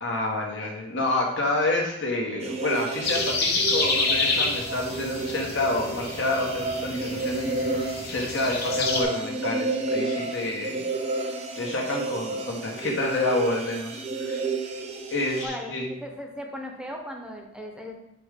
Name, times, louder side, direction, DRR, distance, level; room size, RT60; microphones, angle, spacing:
voice 1, 0.0-10.8 11.2-14.4 15.1-15.9, left 2 dB, 75° left, -1 dB, 1.5 m, -29 dB
sound 1, 2.4-15.5, right 3 dB, 35° right, 0.7 m, -31 dB
sound 2, 3.0-9.0, left 3 dB, 55° left, 1.3 m, -28 dB
voice 2, 15.4-17.9, equal, 5° right, 2 dB, 0.7 m, -37 dB
5.0 x 4.9 x 5.3 m, 0.82 s
head